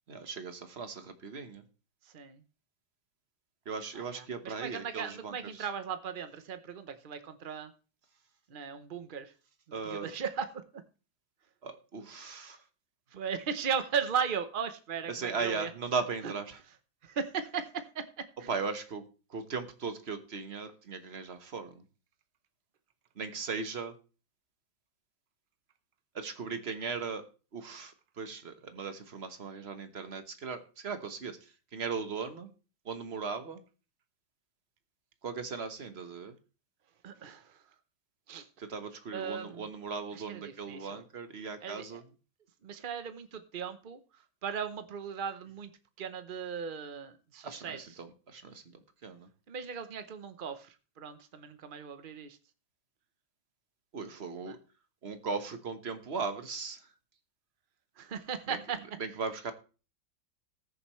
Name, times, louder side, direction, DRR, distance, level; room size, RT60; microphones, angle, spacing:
voice 1, 0.1-1.6 3.6-5.7 9.7-10.1 11.6-12.6 15.1-16.6 18.5-19.0 19.3-21.8 23.1-23.9 26.1-27.3 27.5-32.5 32.8-33.6 35.2-36.4 38.6-42.0 47.4-49.3 53.9-54.6 55.0-56.9 58.5-58.6 59.0-59.5, right 5 dB, 40° right, 8 dB, 1.2 m, -38 dB
voice 2, 2.0-2.4 3.9-7.7 8.5-9.3 9.8-10.8 13.1-15.7 16.2-16.3 17.0-18.5 37.0-37.6 38.3-38.5 39.1-39.7 40.1-41.0 41.6-42.0 42.6-45.7 46.0-47.8 49.5-52.4 54.5-54.6 58.0-58.8, right 7 dB, 60° right, 10 dB, 0.5 m, -37 dB
19.5 x 6.8 x 3.1 m, 0.34 s
omnidirectional pair, 2.0 m